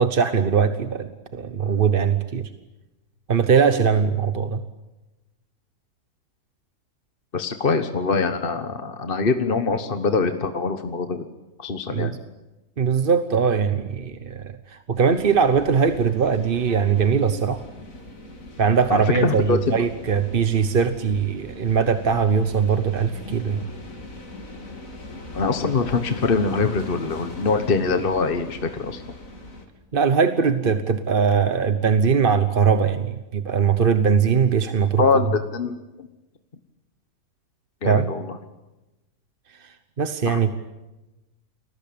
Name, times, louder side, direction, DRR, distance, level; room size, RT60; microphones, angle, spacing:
voice 1, 0.0-2.5 3.3-4.6 11.9-12.2 12.8-17.6 18.6-23.7 29.9-35.2 37.8-38.1 39.5-40.5, right 6 dB, 40° right, 10 dB, 1.1 m, -21 dB
voice 2, 7.3-11.3 11.6-12.1 18.9-19.8 25.3-29.0 35.0-36.1 37.8-38.4 40.3-40.5, left 4 dB, 40° left, 8 dB, 1.3 m, -23 dB
sound 1, 14.9-29.6, left 2 dB, 60° left, 3.5 m, -40 dB
30.0 x 21.0 x 8.7 m, 1.1 s
omnidirectional pair, 1.6 m